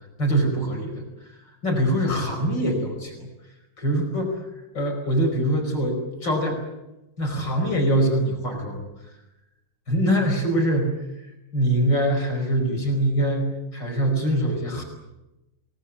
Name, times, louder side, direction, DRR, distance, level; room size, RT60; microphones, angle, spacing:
voice 1, 0.2-3.3 3.8-4.5 4.7-6.6 7.2-8.8 9.9-11.3 11.5-14.8, right 1 dB, 55° left, 2 dB, 5.7 m, -24 dB
28.5 x 19.5 x 8.5 m, 0.97 s
omnidirectional pair, 2.3 m